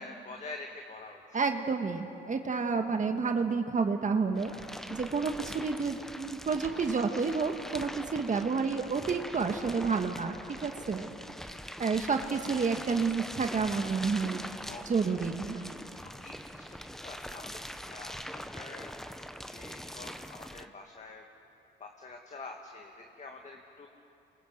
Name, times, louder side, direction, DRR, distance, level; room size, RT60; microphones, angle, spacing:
voice 1, 0.0-1.2 11.9-12.3 14.7-16.6 17.0-19.0 19.5-21.2 21.8-23.9, left 3 dB, 35° left, 2 dB, 2.0 m, -47 dB
voice 2, 1.3-4.5 4.9-11.1 11.8-14.4 14.8-15.7, right 5 dB, 40° right, 5 dB, 1.5 m, -30 dB
sound 1, 4.4-20.7, equal, ahead, 0.9 m, -43 dB
26.5 x 23.5 x 7.9 m, 3.0 s
cardioid pair, 90°, 20 cm